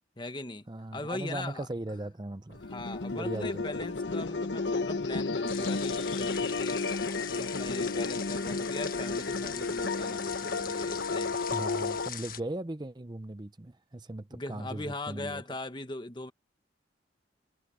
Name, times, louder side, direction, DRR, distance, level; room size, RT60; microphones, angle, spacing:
voice 1, 0.2-0.7 0.9-1.7 2.7-6.8 7.3-11.4 14.3-16.3, left 2 dB, 25° left, 1.2 m, -40 dB
voice 2, 0.7-2.6 3.1-3.6 11.3-15.4, right 1 dB, 25° right, 0.6 m, -38 dB
sound 1, 2.5-12.1, left 3 dB, 80° left, 1.0 m, -32 dB
sound 2, 5.5-12.4, left 9 dB, 50° left, 1.7 m, -42 dB
head